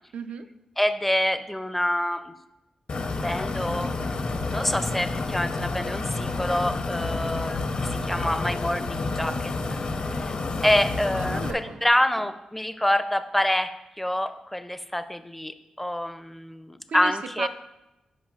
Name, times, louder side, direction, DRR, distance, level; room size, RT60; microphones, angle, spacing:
voice 1, 0.1-0.5 11.2-11.9 12.2-12.3 16.9-17.5, right 6 dB, 85° right, 8 dB, 0.4 m, -35 dB
voice 2, 0.8-2.3 3.2-9.8 10.2-10.4 10.6-13.7 14.0-17.5, left 1 dB, 5° left, 10 dB, 0.4 m, -27 dB
sound 1, 2.9-11.5, left 3 dB, 60° left, 0.7 m, -29 dB
14.0 x 5.3 x 2.4 m, 0.94 s
cardioid pair, 95°, 2 cm